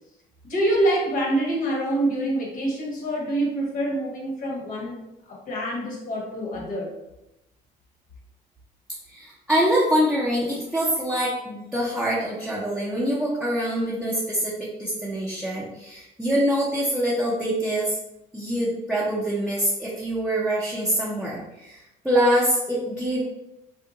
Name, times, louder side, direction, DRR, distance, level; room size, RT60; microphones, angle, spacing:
voice 1, 0.5-5.0 5.3-6.9, right 1 dB, 55° left, -2 dB, 1.2 m, -26 dB
voice 2, 9.1-18.0 18.3-23.2, equal, 5° right, -7 dB, 0.7 m, -25 dB
2.7 x 2.1 x 3.8 m, 0.90 s
cardioid pair, 110°, 17 cm